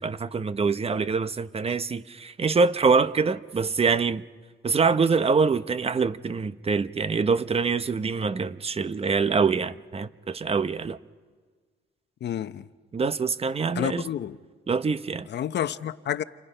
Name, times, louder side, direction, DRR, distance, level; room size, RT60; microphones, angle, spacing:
voice 1, 0.0-4.2 4.6-11.0 12.9-14.0 14.7-15.3, right 5 dB, 30° right, 0.8 m, -25 dB
voice 2, 12.2-12.6 13.8-14.4 15.3-16.2, left 10 dB, 60° left, 0.9 m, -29 dB
30.0 x 29.0 x 5.6 m
cardioid pair, 90°, 20 cm